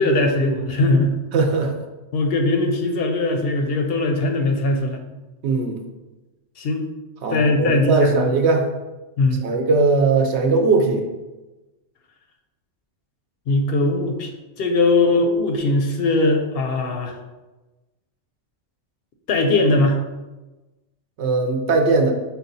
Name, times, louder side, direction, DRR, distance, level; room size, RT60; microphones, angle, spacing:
voice 1, 0.0-1.2 2.1-5.0 6.6-6.9 7.3-8.3 9.2-9.4 13.5-14.3 14.6-17.1 19.3-20.0, left 2 dB, 65° left, 4 dB, 0.7 m, -20 dB
voice 2, 1.3-1.7 5.4-5.8 7.2-8.7 9.4-11.1 21.2-22.1, right 3 dB, 70° right, 4 dB, 0.9 m, -19 dB
5.9 x 2.3 x 3.9 m, 1.1 s
omnidirectional pair, 1.2 m